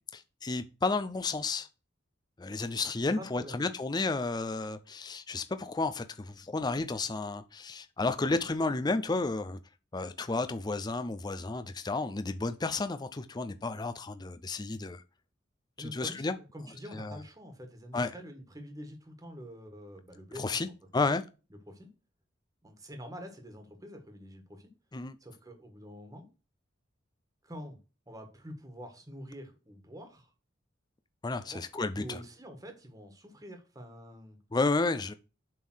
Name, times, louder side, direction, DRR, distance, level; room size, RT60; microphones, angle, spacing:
voice 1, 0.1-1.7 2.4-9.6 9.9-15.0 15.8-16.4 16.9-17.2 17.9-18.1 20.4-20.7 20.9-21.2 24.9-25.1 31.2-32.2 34.5-35.1, left 3 dB, 20° left, 0.4 m, -32 dB
voice 2, 2.9-3.7 15.8-21.0 21.7-21.9 22.6-24.7 25.2-26.3 27.4-27.8 28.1-30.3 31.4-31.6 32.0-34.4, equal, 20° right, 1.6 m, -46 dB
7.5 x 3.7 x 6.2 m
head